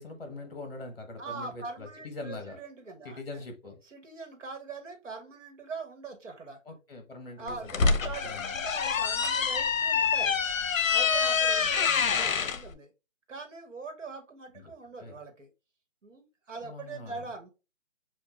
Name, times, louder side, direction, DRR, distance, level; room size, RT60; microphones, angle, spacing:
voice 1, 0.0-2.6 3.0-3.8 6.6-8.5 11.6-12.2 14.5-14.7 15.0-15.1 16.6-17.3, left 2 dB, 45° left, 1.1 m, -43 dB
voice 2, 1.2-3.2 3.8-6.6 7.4-10.4 10.8-12.9 13.3-15.5 16.0-17.5, right 4 dB, 65° right, 1.4 m, -42 dB
sound 1, 7.5-12.6, left 6 dB, 75° left, 0.7 m, -26 dB
6.2 x 2.4 x 2.2 m
hypercardioid pair, 180°, 40 cm